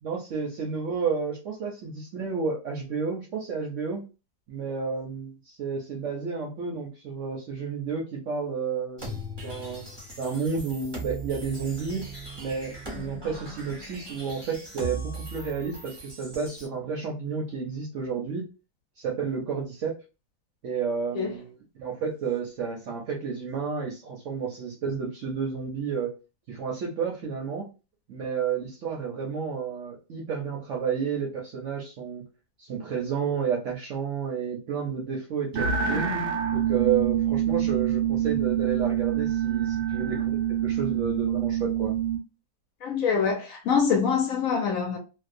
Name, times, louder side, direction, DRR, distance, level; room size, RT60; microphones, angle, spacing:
voice 1, 0.0-4.0 4.5-9.8 10.2-12.1 12.4-18.4 19.0-19.9 20.6-26.1 26.5-27.7 28.1-32.2 32.6-36.1 36.5-41.9, right 6 dB, 65° right, 0.8 m, -31 dB
sound 1, 9.0-16.7, right 2 dB, 30° right, 0.5 m, -39 dB
sound 2, 35.5-42.2, right 9 dB, 90° right, 1.2 m, -26 dB
voice 2, 42.8-45.0, left 6 dB, 65° left, 0.9 m, -25 dB
2.7 x 2.0 x 2.5 m
omnidirectional pair, 1.8 m